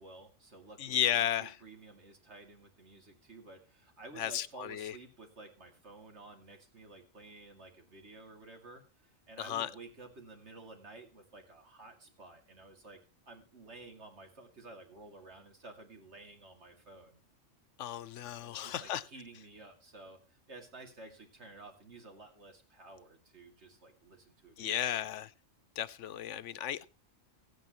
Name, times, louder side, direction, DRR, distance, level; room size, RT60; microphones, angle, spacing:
voice 1, 0.0-13.0 13.3-17.2 18.4-25.0, right 2 dB, 65° right, 3 dB, 2.7 m, -53 dB
voice 2, 0.8-1.5 4.2-4.9 9.4-9.7 17.8-19.0 24.6-25.3 25.8-26.9, left 11 dB, 75° left, 15 dB, 1.0 m, -34 dB
16.5 x 9.4 x 3.0 m, 0.34 s
omnidirectional pair, 1.3 m